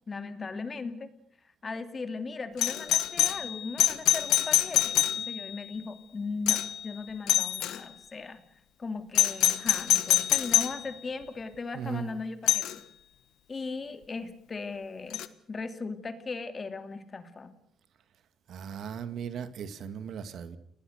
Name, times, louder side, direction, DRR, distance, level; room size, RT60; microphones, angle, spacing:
voice 1, 0.1-1.1 1.6-8.4 8.8-12.6 13.5-17.5, left 4 dB, 35° left, 9 dB, 2.7 m, -38 dB
Doorbell, 2.6-5.6 6.5-6.8 7.3-7.8 9.1-10.8 12.5-12.7 15.1-15.3, left 13 dB, 85° left, 1.4 m, -25 dB
voice 2, 11.7-12.1 18.5-20.6, right 8 dB, 70° right, 11 dB, 2.2 m, -37 dB
30.0 x 19.5 x 6.6 m, 0.69 s
cardioid pair, 90°, 0 cm